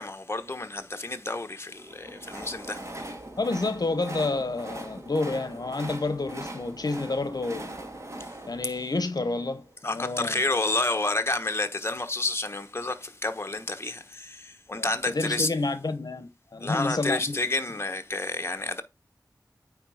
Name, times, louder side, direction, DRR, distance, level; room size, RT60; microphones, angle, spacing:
voice 1, 0.0-2.9 9.8-15.5 16.6-18.8, left 2 dB, 35° left, 1.0 m, -30 dB
Train, 1.7-9.9, right 1 dB, 40° right, 1.7 m, -41 dB
voice 2, 3.4-7.7 8.5-10.4 14.7-17.4, left 3 dB, 65° left, 0.8 m, -29 dB
9.0 x 3.6 x 4.8 m
wide cardioid pair, 50°, 7 cm